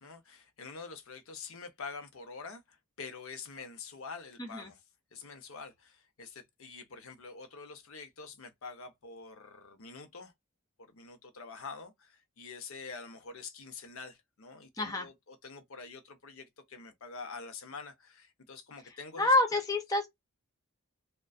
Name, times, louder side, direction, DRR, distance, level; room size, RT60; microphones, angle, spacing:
voice 1, 0.0-4.8 5.1-10.3 10.8-19.6, left 4 dB, 65° left, 0.6 m, -46 dB
voice 2, 4.4-4.7 14.8-15.1 19.2-20.1, left 2 dB, 15° left, 0.4 m, -27 dB
2.4 x 2.2 x 2.3 m
head